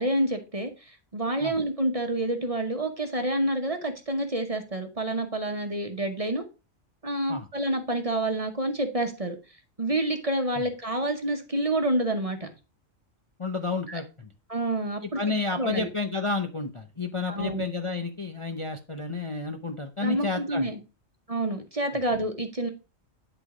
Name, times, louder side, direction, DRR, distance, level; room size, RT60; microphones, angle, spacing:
voice 1, 0.0-6.5 7.0-9.4 9.8-12.5 13.9-14.0 14.5-15.2 15.5-15.9 17.3-17.6 20.0-20.8 21.3-22.7, right 1 dB, 30° right, 5 dB, 1.0 m, -28 dB
voice 2, 13.4-14.3 15.0-20.7, left 3 dB, 30° left, 3 dB, 0.7 m, -31 dB
10.0 x 4.0 x 4.8 m, 0.31 s
omnidirectional pair, 1.4 m